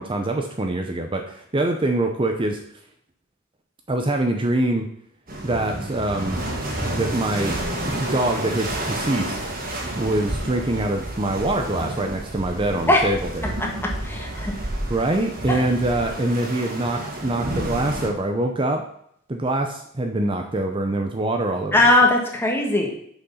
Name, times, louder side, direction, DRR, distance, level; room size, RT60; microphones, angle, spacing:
voice 1, 0.0-2.6 3.9-4.9 5.4-6.4 6.9-7.6 7.9-9.4 10.0-13.5 14.9-18.8 19.3-21.8, right 2 dB, 25° right, 4 dB, 0.7 m, -24 dB
sound 1, 5.3-18.1, right 1 dB, 50° right, 1.9 m, -30 dB
voice 2, 14.0-14.5 15.5-15.6 21.7-22.9, left 2 dB, 10° left, 0 dB, 1.5 m, -19 dB
6.8 x 6.0 x 5.6 m, 0.67 s
head